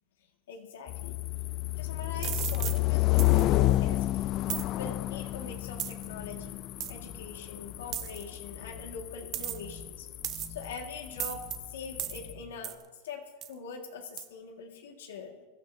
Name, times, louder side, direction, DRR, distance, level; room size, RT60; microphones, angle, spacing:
voice 1, 0.5-1.2 1.8-4.3 4.7-10.1 10.5-12.8 13.0-15.5, left 5 dB, 90° left, 2 dB, 1.9 m, -43 dB
sound 1, 0.9-12.3, left 17 dB, 35° left, 0.3 m, -30 dB
sound 2, 2.2-2.8 3.2-3.4 4.5-4.7 5.8-6.0 6.8-6.9 7.9-8.2 9.3-9.7 10.2-10.6 11.2-11.6 12.0-12.2 12.6-12.8 13.4-13.5 14.2-14.3, right 12 dB, 35° right, 0.8 m, -35 dB
sound 3, 5.9-12.8, left 3 dB, 10° left, 2.4 m, -50 dB
23.0 x 11.5 x 2.8 m, 1.3 s
supercardioid pair, 150°, 0 cm